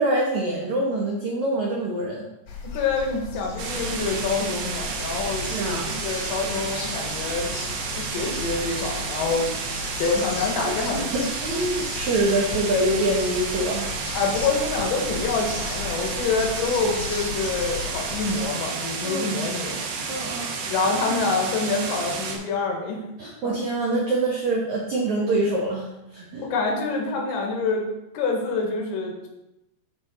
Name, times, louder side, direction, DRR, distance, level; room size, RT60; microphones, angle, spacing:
voice 1, 0.0-2.2 5.5-6.0 10.9-13.9 19.0-19.4 20.1-20.5 23.2-26.5, right 1 dB, 90° right, -2 dB, 1.6 m, -25 dB
sound 1, 2.5-18.4, left 5 dB, 65° left, 1.7 m, -36 dB
voice 2, 2.7-5.5 6.0-7.5 7.8-9.5 10.0-11.1 14.1-19.8 20.7-23.0 23.4-23.5 26.4-27.9 28.1-29.3, left 4 dB, 90° left, 1 dB, 3.8 m, -26 dB
sound 2, 3.6-22.4, right 4 dB, 70° right, 2.9 m, -31 dB
12.5 x 4.6 x 3.8 m, 0.92 s
omnidirectional pair, 5.1 m